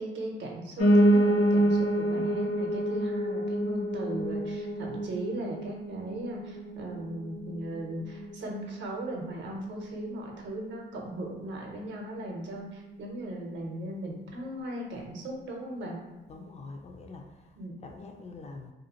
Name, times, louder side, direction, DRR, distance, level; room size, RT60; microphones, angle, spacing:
voice 1, 0.0-16.0 17.5-17.7, right 1 dB, 65° right, 0 dB, 0.7 m, -38 dB
Piano, 0.8-9.9 10.3-11.5 11.7-11.8 12.1-12.2 12.4-12.5 13.0-13.1, right 1 dB, 60° left, 0.8 m, -28 dB
voice 2, 16.3-17.5 17.8-18.7, left 3 dB, 35° left, 3 dB, 0.3 m, -44 dB
2.6 x 2.4 x 2.8 m, 1.0 s
cardioid pair, 90°, 20 cm